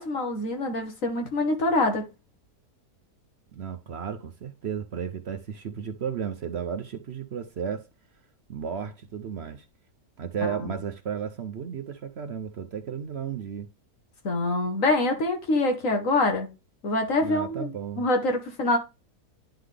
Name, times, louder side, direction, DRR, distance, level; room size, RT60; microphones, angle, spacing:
voice 1, 0.0-2.1 10.4-10.7 14.2-16.5 16.8-18.8, left 2 dB, 55° left, 1.5 m, -25 dB
voice 2, 3.5-7.9 8.5-9.7 10.2-13.7 17.2-18.1, right 7 dB, 60° right, 0.7 m, -34 dB
10.5 x 3.8 x 3.3 m
omnidirectional pair, 1.7 m